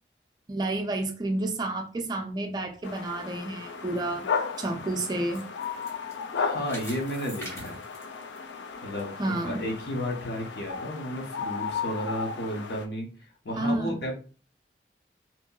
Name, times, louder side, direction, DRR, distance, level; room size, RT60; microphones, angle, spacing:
voice 1, 0.5-4.3 4.6-5.5 9.2-9.6 13.6-14.1, right 2 dB, 25° right, 0.3 m, -30 dB
sound 1, 2.8-12.9, left 5 dB, 85° left, 0.4 m, -35 dB
sound 2, 4.2-9.0 9.4-9.5 10.1-10.2, equal, 15° left, 0.8 m, -46 dB
voice 2, 6.3-7.8 8.8-14.1, equal, 65° left, 0.8 m, -33 dB
2.8 x 2.6 x 2.2 m
head